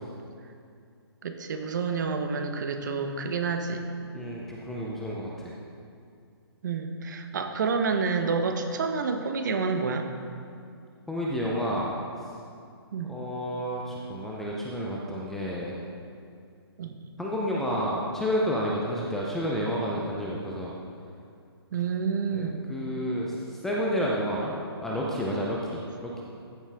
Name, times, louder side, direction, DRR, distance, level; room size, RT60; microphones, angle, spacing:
voice 1, 1.2-3.8 6.6-10.1 12.9-13.2 16.8-17.0 21.7-22.6, right 5 dB, 45° right, 6 dB, 0.9 m, -29 dB
voice 2, 4.1-5.5 11.1-12.0 13.0-15.8 17.2-20.7 22.3-23.3 23.6-24.6 24.8-26.2, equal, 5° left, -4 dB, 0.5 m, -30 dB
14.0 x 7.2 x 3.5 m, 2.3 s
hypercardioid pair, 160°, 14 cm